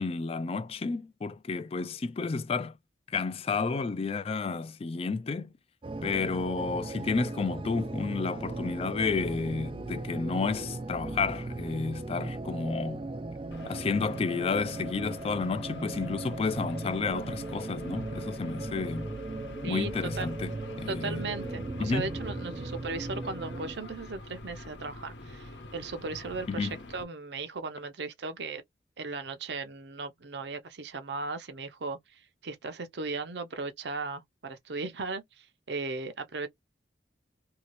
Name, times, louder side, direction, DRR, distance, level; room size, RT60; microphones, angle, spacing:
voice 1, 0.0-2.8 3.1-5.5 6.0-13.1 13.7-19.1 19.6-21.3 21.8-22.1 26.5-26.7, left 4 dB, 35° left, 0.3 m, -31 dB
sound 1, 5.8-23.8, right 2 dB, 30° right, 0.4 m, -38 dB
sound 2, 13.5-27.0, left 2 dB, 80° left, 0.9 m, -45 dB
voice 2, 19.6-20.3 20.9-28.6 29.0-36.5, right 3 dB, 70° right, 0.7 m, -37 dB
2.8 x 2.7 x 3.1 m
head